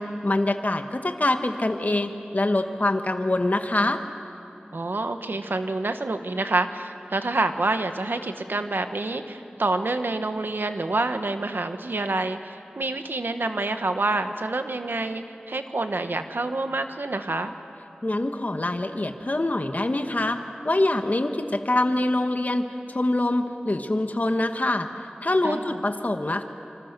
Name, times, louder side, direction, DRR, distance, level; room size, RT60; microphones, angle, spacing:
voice 1, 0.0-4.0 18.0-20.4 20.6-24.9 25.2-26.4, left 2 dB, 50° left, 6 dB, 1.3 m, -24 dB
voice 2, 4.7-17.5 25.4-25.8, right 2 dB, 85° right, 8 dB, 1.3 m, -27 dB
26.5 x 25.5 x 6.8 m, 2.7 s
wide cardioid pair, 50°, 3 cm